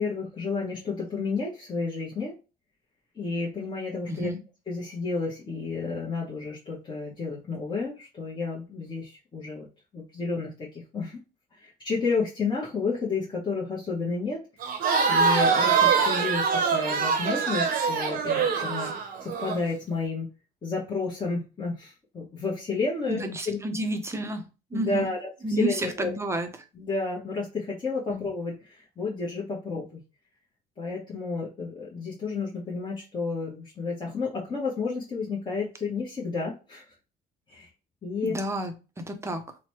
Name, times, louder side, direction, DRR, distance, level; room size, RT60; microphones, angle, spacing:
voice 1, 0.0-2.3 3.1-4.3 4.7-9.7 9.9-11.2 11.5-14.4 15.1-18.9 19.2-20.3 20.6-23.6 24.7-26.1 26.7-30.0 30.8-36.8 37.5-37.7 38.0-38.4, left 4 dB, 25° left, -5 dB, 0.9 m, -31 dB
voice 2, 4.1-4.4 23.1-24.4 24.7-25.1 25.4-26.5 28.1-28.2 38.2-39.4, right 1 dB, 15° right, 6 dB, 0.5 m, -30 dB
Crowd, 14.6-19.6, right 6 dB, 60° right, 0.7 m, -24 dB
3.1 x 2.1 x 3.0 m, 0.31 s
cardioid pair, 110°, 17 cm